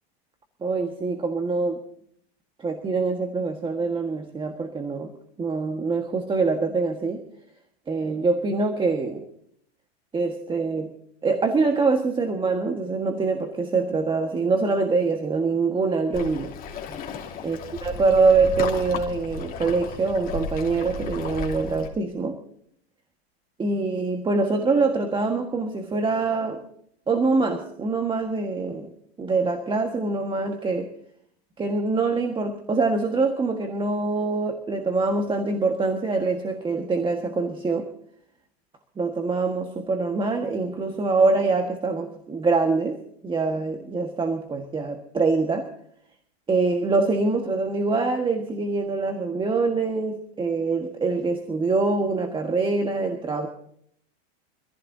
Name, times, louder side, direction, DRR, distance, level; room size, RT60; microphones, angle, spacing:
voice 1, 0.6-1.8 2.6-5.1 5.4-7.2 7.9-9.2 10.1-10.9 11.2-16.5 17.4-22.4 23.6-26.6 27.1-28.9 29.2-30.9 31.6-37.9 39.0-45.7 46.5-53.5, right 3 dB, 15° right, 4 dB, 1.5 m, -24 dB
Waves surf, 16.1-21.9, left 4 dB, 25° left, 3.0 m, -34 dB
25.5 x 15.0 x 2.7 m, 0.67 s
supercardioid pair, 130°, 32 cm